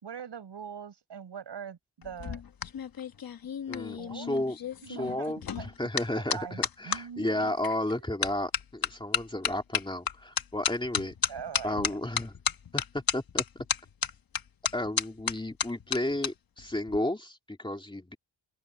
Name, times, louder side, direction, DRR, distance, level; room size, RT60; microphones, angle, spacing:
voice 1, 0.0-2.4 4.0-4.3 4.8-5.3 6.3-7.5 7.9-8.3 11.3-11.7, right 7 dB, 65° right, 6.8 m, -42 dB
sound 1, 2.0-7.0 7.6-7.9 8.2-16.3 16.6-17.0, left 8 dB, 50° left, 1.1 m, -32 dB
voice 2, 3.7-4.6 4.9-12.4 12.7-13.4 14.7-18.2, left 1 dB, 10° left, 2.6 m, -33 dB
open air
wide cardioid pair, 155°, 44 cm